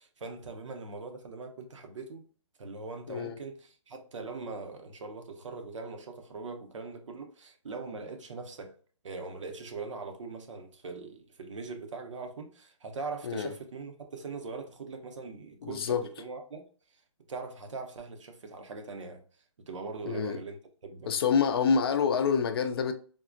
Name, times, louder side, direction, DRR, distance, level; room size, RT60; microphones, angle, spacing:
voice 1, 0.0-2.3 2.6-8.7 9.0-16.7 17.3-19.2 19.7-20.6 20.8-21.2, right 4 dB, 70° right, 0.7 m, -41 dB
voice 2, 15.6-16.0 20.1-20.4 21.1-22.9, left 6 dB, 50° left, 0.4 m, -27 dB
3.6 x 2.1 x 2.4 m
hypercardioid pair, 145°, 16 cm